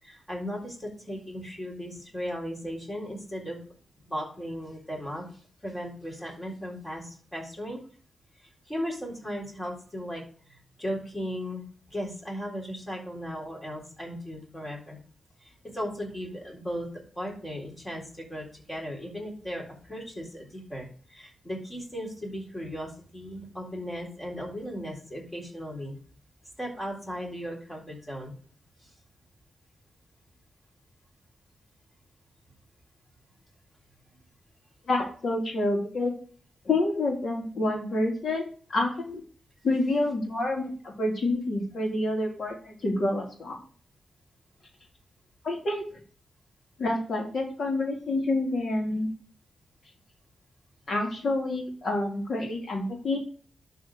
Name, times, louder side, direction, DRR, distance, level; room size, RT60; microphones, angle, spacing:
voice 1, 0.0-3.6 4.0-7.8 8.4-15.0 15.4-16.9 17.1-25.9 26.6-28.3 28.8-28.9, equal, 15° left, -2 dB, 3.9 m, -37 dB
voice 2, 34.9-36.1 36.6-39.2 39.6-43.6 45.4-45.8 46.8-49.1 50.9-53.2, left 2 dB, 55° left, 0 dB, 2.9 m, -28 dB
11.5 x 4.2 x 4.8 m, 0.43 s
wide cardioid pair, 115°, 0 cm